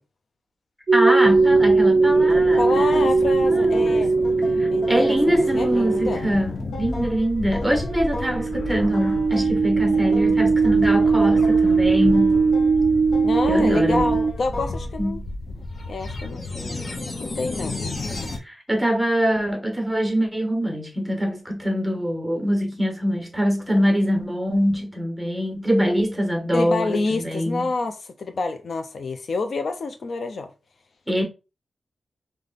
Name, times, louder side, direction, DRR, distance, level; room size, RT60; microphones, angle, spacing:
voice 1, 0.9-4.0 4.6-12.4 13.5-14.0 15.0-15.3 18.4-27.6 31.1-31.2, equal, ahead, 1.3 m, -24 dB
sound 1, 0.9-6.4 7.9-14.3, right 4 dB, 50° right, 0.4 m, -19 dB
sound 2, 1.2-18.4, left 2 dB, 45° left, 1.0 m, -33 dB
sound 3, 2.1-14.9, left 2 dB, 80° left, 1.3 m, -37 dB
voice 2, 2.6-4.1 4.7-6.2 13.2-15.2 15.9-17.8 26.5-30.5, left 3 dB, 60° left, 0.5 m, -28 dB
3.4 x 3.3 x 3.9 m
wide cardioid pair, 130°, 0 cm